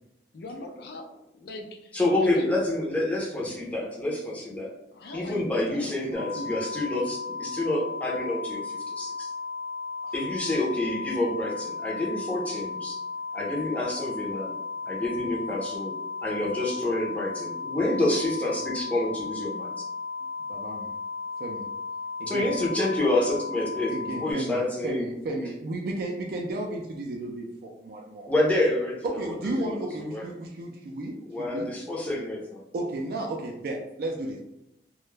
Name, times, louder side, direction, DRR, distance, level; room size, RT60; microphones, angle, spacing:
voice 1, 0.3-1.0 1.3-1.9 2.2-2.6 4.9-6.6, left 1 dB, 60° left, 4 dB, 0.4 m, -39 dB
voice 2, 1.9-4.7 5.1-9.3 10.1-13.0 13.3-14.5 14.8-15.9 16.2-19.7 22.3-25.1 28.3-30.3 31.2-32.6, left 1 dB, 10° left, -4 dB, 0.5 m, -28 dB
sound 1, 6.1-24.3, left 4 dB, 85° left, 0.8 m, -35 dB
voice 3, 20.5-20.9 21.4-21.7 22.2-22.5 23.9-28.3 29.0-31.7 32.7-34.4, right 2 dB, 55° right, 1 dB, 0.3 m, -33 dB
2.2 x 2.0 x 3.1 m, 0.87 s
head